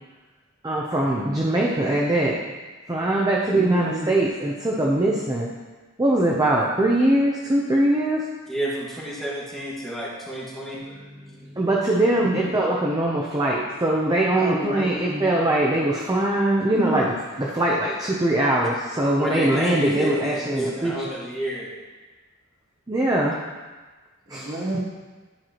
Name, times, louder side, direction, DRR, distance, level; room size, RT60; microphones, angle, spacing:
voice 1, 0.6-2.4 2.9-5.5 6.0-8.2 11.6-21.1 22.9-23.4 24.3-24.6, right 1 dB, 15° right, -3 dB, 0.6 m, -22 dB
voice 2, 3.5-4.1 10.7-11.7 12.2-12.5 14.4-15.3 16.6-17.1 19.5-20.1 24.3-24.8, right 1 dB, 45° right, -3 dB, 1.2 m, -30 dB
voice 3, 8.5-10.8 19.2-21.7, equal, ahead, -8 dB, 1.6 m, -30 dB
11.5 x 4.7 x 3.0 m, 1.3 s
head